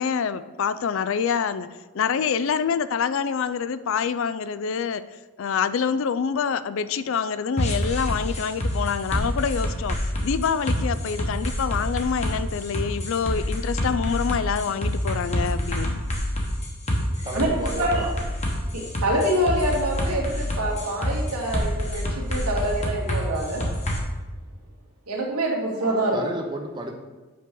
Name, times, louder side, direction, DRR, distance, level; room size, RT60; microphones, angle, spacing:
voice 1, 0.0-1.7 1.9-5.0 5.4-10.0 10.2-16.0, left 6 dB, 60° left, 14 dB, 0.3 m, -26 dB
sound 1, 7.6-24.0, equal, 30° left, 1.1 m, -27 dB
voice 2, 17.2-18.1 26.1-26.9, right 1 dB, 20° right, 2 dB, 0.6 m, -33 dB
voice 3, 18.7-23.7 25.1-26.2, right 1 dB, 90° right, -2 dB, 2.0 m, -26 dB
8.4 x 6.0 x 3.8 m, 1.3 s
head